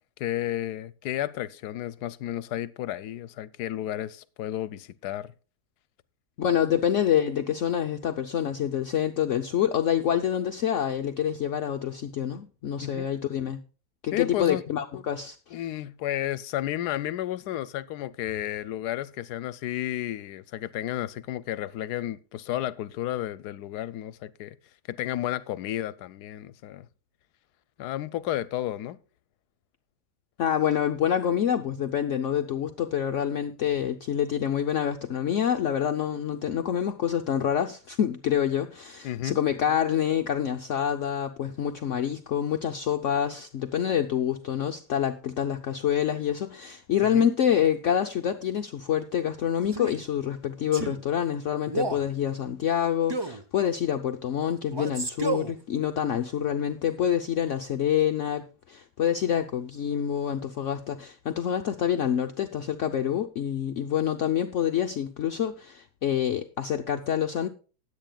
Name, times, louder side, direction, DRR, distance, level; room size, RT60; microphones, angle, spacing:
voice 1, 0.2-5.3 12.8-13.1 14.1-14.6 15.5-24.6 24.9-26.9 27.8-29.0 39.0-39.4 47.0-47.3, left 13 dB, 80° left, 1.2 m, -32 dB
voice 2, 6.4-13.6 14.0-15.6 30.4-67.5, left 9 dB, 60° left, 0.9 m, -27 dB
Male speech man speaking, 49.7-50.0 50.7-51.0 51.7-52.1 53.1-53.4 54.7-55.5, right 3 dB, 30° right, 0.5 m, -31 dB
19.5 x 8.3 x 2.3 m
omnidirectional pair, 1.7 m